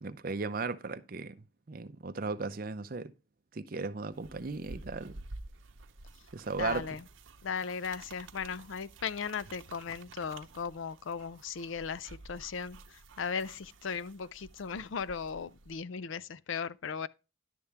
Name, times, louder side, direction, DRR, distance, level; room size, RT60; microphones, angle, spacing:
voice 1, 0.0-3.1 3.5-5.2 6.3-6.8, right 4 dB, 45° right, 0.5 m, -36 dB
sound 1, 4.1-15.8, right 2 dB, 75° right, 0.8 m, -51 dB
voice 2, 6.6-7.0 7.4-17.1, left 6 dB, 75° left, 0.5 m, -37 dB
11.0 x 7.0 x 3.3 m
head